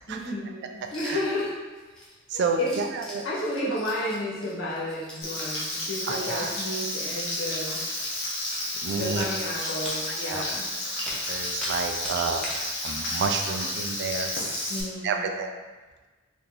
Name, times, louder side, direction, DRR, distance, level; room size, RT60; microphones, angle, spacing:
voice 1, 0.1-1.5 2.3-2.8 3.2-7.8 8.9-10.7 14.7-15.3, left 1 dB, 80° left, -7 dB, 1.2 m, -32 dB
sound 1, 0.8-1.4 1.8-11.8 12.0-12.7 13.0-13.1 13.4-13.8 14.1-14.2 14.6-14.8, left 1 dB, 5° left, 0.7 m, -41 dB
voice 2, 2.3-3.3 6.1-6.5 8.8-9.2 10.1-10.4 11.3-14.3 15.0-15.5, right 4 dB, 60° right, 4 dB, 0.3 m, -30 dB
Frying (food), 5.2-14.8, left 1 dB, 60° left, 0.8 m, -32 dB
2.8 x 2.6 x 3.8 m, 1.3 s
head